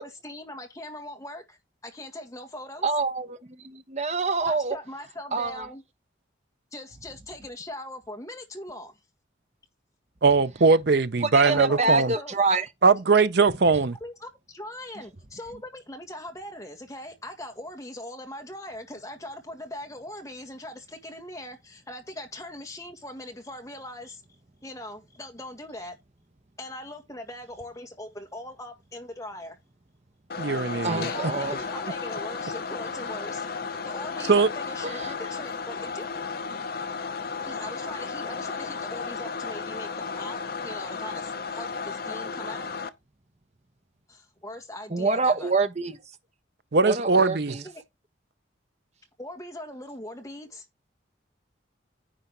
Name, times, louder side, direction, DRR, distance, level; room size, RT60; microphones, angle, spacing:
voice 1, 0.0-2.9 4.5-5.8 6.7-9.0 11.5-12.4 14.0-24.2 24.6-26.0 26.6-29.6 30.6-33.5 33.8-36.2 37.5-42.7 44.1-45.5 47.6-47.8 49.2-50.7, left 1 dB, 15° left, 1.8 m, -40 dB
voice 2, 2.8-4.8 5.3-5.7 11.2-12.7 30.8-31.6 34.8-35.1 44.9-46.0 46.8-47.6, right 3 dB, 35° right, 1.0 m, -26 dB
voice 3, 10.2-12.1 12.8-14.0 30.4-31.1 34.3-34.5 46.7-47.6, right 4 dB, 55° right, 0.6 m, -20 dB
sound 1, 30.3-42.9, left 5 dB, 50° left, 0.8 m, -34 dB
10.0 x 3.4 x 6.7 m
head